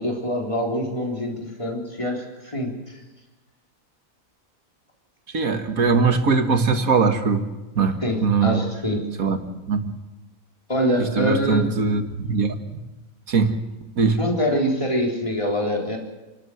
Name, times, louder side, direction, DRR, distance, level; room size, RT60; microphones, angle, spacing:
voice 1, 0.0-3.0 8.0-9.0 10.7-11.7 14.2-16.0, equal, 20° left, 0 dB, 4.0 m, -25 dB
voice 2, 5.3-8.7 9.2-9.4 9.7-9.9 11.0-12.8 13.3-13.6 14.0-14.2, right 4 dB, 85° right, 8 dB, 2.1 m, -21 dB
28.5 x 12.5 x 7.8 m, 1.1 s
omnidirectional pair, 1.4 m